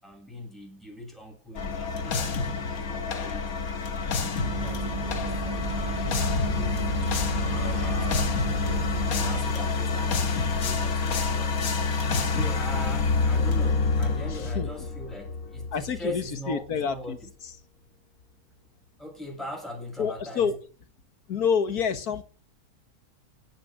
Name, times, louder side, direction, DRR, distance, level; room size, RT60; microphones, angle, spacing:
voice 1, 0.0-2.4 2.8-3.6 4.1-6.9 7.6-8.7 9.0-12.0 12.3-17.3 19.0-20.6, left 1 dB, ahead, 7.4 m, -41 dB
sound 1, 1.6-16.3, left 4 dB, 70° left, 1.9 m, -27 dB
Bus, 4.4-9.4, right 2 dB, 20° right, 3.8 m, -32 dB
voice 2, 14.3-14.7 15.7-17.2 20.0-20.6 21.3-22.2, left 6 dB, 90° left, 2.0 m, -28 dB
16.5 x 10.5 x 6.4 m
omnidirectional pair, 1.6 m